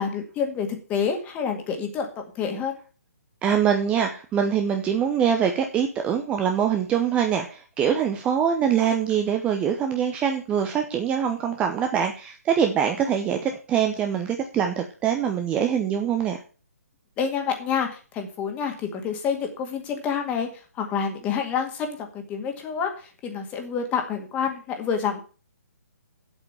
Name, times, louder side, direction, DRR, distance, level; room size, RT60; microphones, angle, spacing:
voice 1, 0.0-2.8 17.2-25.2, left 6 dB, 15° left, 5 dB, 2.0 m, -28 dB
voice 2, 3.4-16.4, right 8 dB, 15° right, 5 dB, 0.8 m, -24 dB
8.2 x 8.1 x 7.0 m, 0.37 s
figure-of-eight pair, 135°, 8 cm